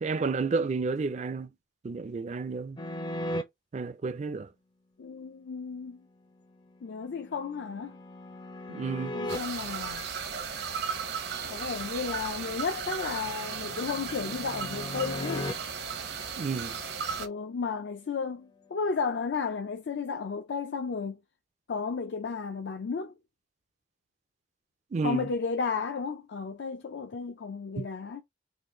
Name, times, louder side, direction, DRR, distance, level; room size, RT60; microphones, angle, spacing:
voice 1, 0.0-1.5 1.8-2.8 3.7-4.5 8.7-9.2 16.4-16.7 24.9-25.3 27.8-27.9, right 4 dB, 40° right, 0.4 m, -31 dB
sound 1, 2.8-3.4 6.8-9.4 12.5-15.5, left 1 dB, 25° left, 0.5 m, -38 dB
voice 2, 5.0-6.0 6.8-8.0 9.1-10.0 11.4-15.5 17.2-21.2 21.7-23.1 25.0-28.2, left 5 dB, 70° left, 0.4 m, -33 dB
sound 2, 9.3-17.3, right 6 dB, 65° right, 0.8 m, -35 dB
3.8 x 2.5 x 3.0 m
head